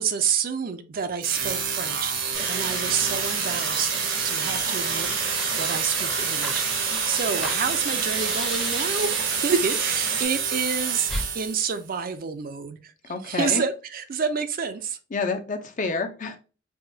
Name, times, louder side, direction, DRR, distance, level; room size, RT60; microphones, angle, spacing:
voice 1, 0.0-2.1 2.5-12.9 13.2-15.0, right 6 dB, 50° right, 0.4 m, -29 dB
sound 1, 1.2-11.8, right 6 dB, 75° right, 0.9 m, -28 dB
sound 2, 2.3-10.2, right 3 dB, 90° right, 1.6 m, -31 dB
Fire, 5.0-9.4 11.0-11.3, equal, ahead, 0.6 m, -36 dB
voice 2, 13.1-13.6 15.1-16.4, left 4 dB, 45° left, 0.6 m, -28 dB
4.7 x 2.2 x 2.6 m
head